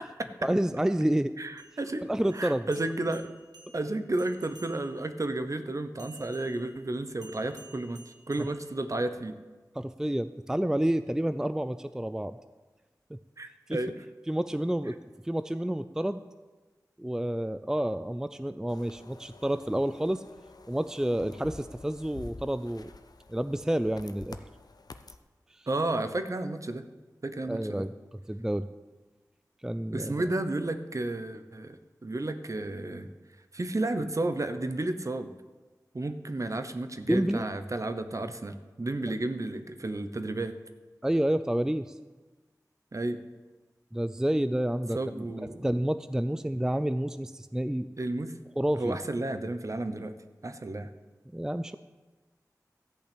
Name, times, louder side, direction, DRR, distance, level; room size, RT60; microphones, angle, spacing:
voice 1, 0.4-1.3 2.0-2.7 9.8-12.4 13.1-13.2 13.7-13.8 14.3-14.9 15.2-16.2 17.0-20.2 20.7-22.9 23.3-24.4 27.5-27.9 28.3-28.7 29.6-30.3 37.1-37.5 41.0-41.9 43.9-47.9 48.6-49.0 51.3-51.8, right 1 dB, 10° right, 11 dB, 0.4 m, -29 dB
voice 2, 1.4-2.0 2.3-3.3 3.7-9.4 13.4-13.9 25.7-26.8 27.2-27.8 29.9-33.1 33.5-35.3 35.9-40.6 42.9-43.2 44.9-45.6 48.0-48.3 48.8-50.1 50.4-50.9, right 2 dB, 50° right, 10 dB, 0.9 m, -32 dB
sound 1, 1.5-5.2 6.0-9.2, right 1 dB, 90° right, 1.4 m, -55 dB
sound 2, 18.7-25.2, left 3 dB, 70° left, 0.7 m, -49 dB
14.0 x 5.6 x 8.5 m, 1.3 s
wide cardioid pair, 55°, 7 cm